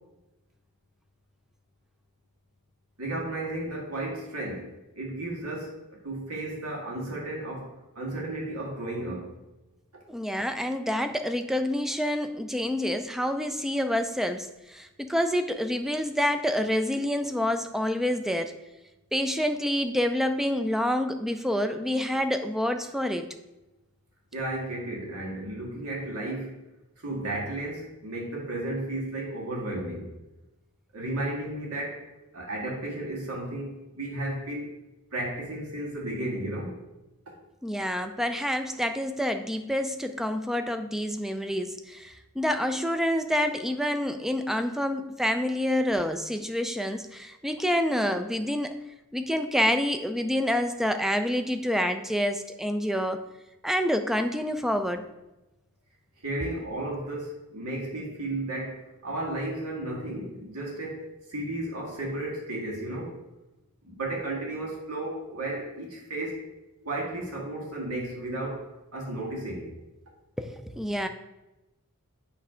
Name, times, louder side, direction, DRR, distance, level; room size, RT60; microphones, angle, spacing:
voice 1, 3.0-5.8 6.0-7.7 8.0-9.3 24.3-26.5 27.0-30.1 30.9-32.0 32.3-34.7 35.1-36.8 56.2-63.1 63.8-66.4 66.8-69.7, right 1 dB, 75° right, -2 dB, 2.0 m, -33 dB
voice 2, 10.1-18.5 19.1-23.3 37.6-48.8 49.1-53.2 53.6-55.0 70.4-71.1, equal, ahead, 8 dB, 0.3 m, -27 dB
8.2 x 3.2 x 5.0 m, 1.0 s
head